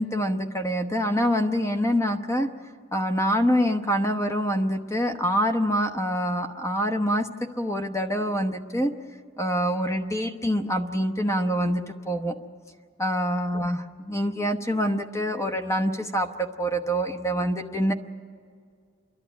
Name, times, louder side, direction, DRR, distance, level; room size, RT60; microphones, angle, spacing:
voice 1, 0.0-2.5 2.9-7.3 7.6-8.9 9.4-12.3 13.0-17.9, equal, 15° left, 6 dB, 1.0 m, -25 dB
29.0 x 11.5 x 9.7 m, 2.1 s
head